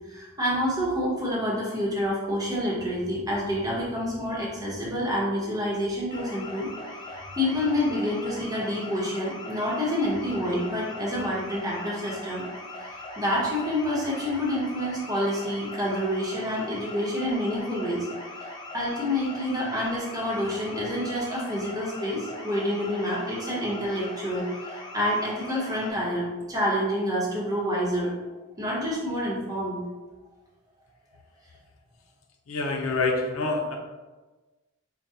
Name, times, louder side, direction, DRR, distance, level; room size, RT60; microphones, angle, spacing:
voice 1, 0.1-6.7 7.4-12.4 12.8-18.1 18.7-28.1 28.6-29.8, equal, 20° right, -6 dB, 0.9 m, -28 dB
sound 1, 6.1-25.9, left 2 dB, 20° left, 0.4 m, -40 dB
voice 2, 32.5-33.8, left 3 dB, 90° left, 2 dB, 0.5 m, -26 dB
4.7 x 2.2 x 2.7 m, 1.2 s
head